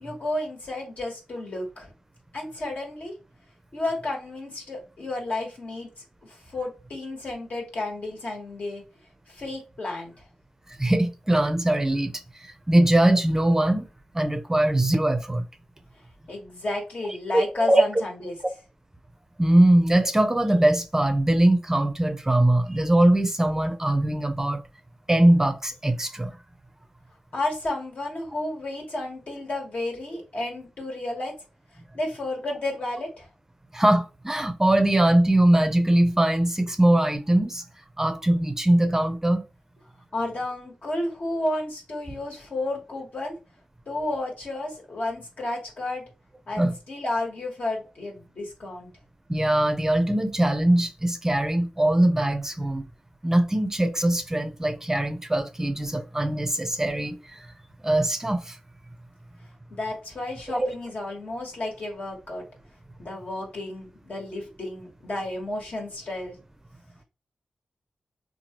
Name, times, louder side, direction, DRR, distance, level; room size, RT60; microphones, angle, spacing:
voice 1, 0.0-1.9 2.3-3.1 3.7-8.8 9.3-10.1 16.3-18.4 27.3-31.3 31.9-33.3 40.1-43.3 43.9-46.0 46.5-48.9 59.7-62.4 63.0-66.4, left 2 dB, 65° left, 1.2 m, -32 dB
voice 2, 10.8-12.1 12.4-13.9 14.1-15.4 17.3-17.8 19.4-24.6 25.1-26.3 33.7-37.6 38.0-39.4 46.6-46.7 49.3-52.8 53.2-57.4 57.8-58.6 60.5-60.7, right 1 dB, 20° right, 0.5 m, -21 dB
2.9 x 2.3 x 2.8 m
cardioid pair, 50°, 3 cm